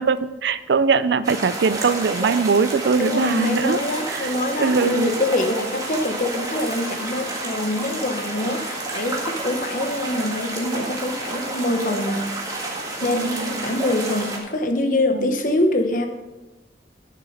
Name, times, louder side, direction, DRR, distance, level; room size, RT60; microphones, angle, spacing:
voice 1, 0.0-3.8 4.1-5.1 8.4-8.5 13.1-13.8 15.1-15.3, right 5 dB, 80° right, 14 dB, 0.5 m, -22 dB
sound 1, 1.2-14.4, right 2 dB, 20° right, 1.7 m, -30 dB
voice 2, 3.0-12.3 13.0-16.1, left 1 dB, 50° left, 5 dB, 1.1 m, -24 dB
11.0 x 6.8 x 5.1 m, 1.1 s
head